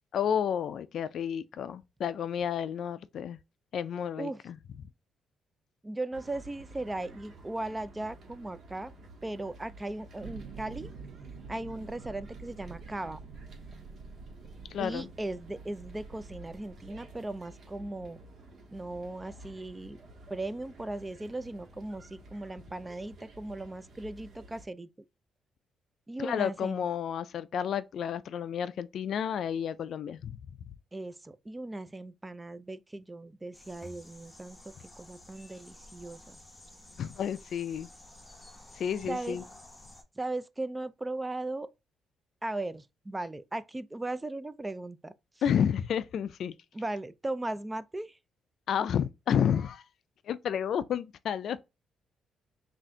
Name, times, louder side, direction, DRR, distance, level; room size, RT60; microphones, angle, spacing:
voice 1, 0.1-3.4 3.7-4.6 14.7-15.1 26.2-30.7 37.0-37.9 38.7-39.4 45.4-46.5 48.7-49.8 50.2-51.6, left 8 dB, 65° left, 0.3 m, -31 dB
voice 2, 5.8-8.9 9.2-10.9 11.5-13.2 14.8-18.2 18.7-20.0 20.3-25.1 26.1-26.8 30.9-36.4 39.0-39.4 40.2-41.7 42.4-45.1 46.7-48.2, right 2 dB, 15° right, 0.4 m, -37 dB
sound 1, 6.1-24.7, right 1 dB, 55° right, 1.3 m, -52 dB
sound 2, 10.2-17.3, right 5 dB, 80° right, 0.6 m, -47 dB
sound 3, 33.5-40.0, left 1 dB, 15° left, 0.8 m, -52 dB
3.6 x 2.5 x 4.3 m
cardioid pair, 90°, 0 cm